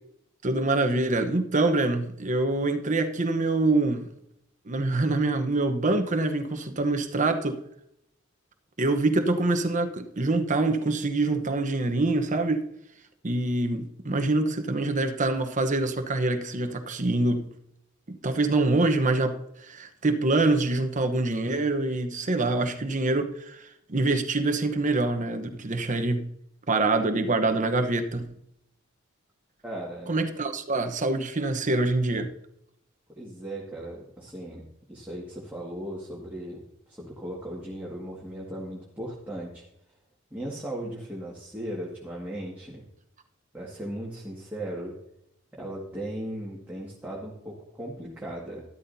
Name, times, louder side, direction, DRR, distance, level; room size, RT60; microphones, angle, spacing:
voice 1, 0.4-4.1 4.7-7.6 8.8-12.7 13.2-17.5 18.1-26.3 26.7-28.3 30.1-32.3, right 2 dB, 35° right, 1.0 m, -25 dB
voice 2, 29.6-30.1 33.2-34.6 34.9-36.6 36.9-39.6 40.3-42.8 43.5-44.9 45.5-48.6, right 1 dB, 10° right, 1.9 m, -37 dB
12.5 x 12.0 x 2.8 m
head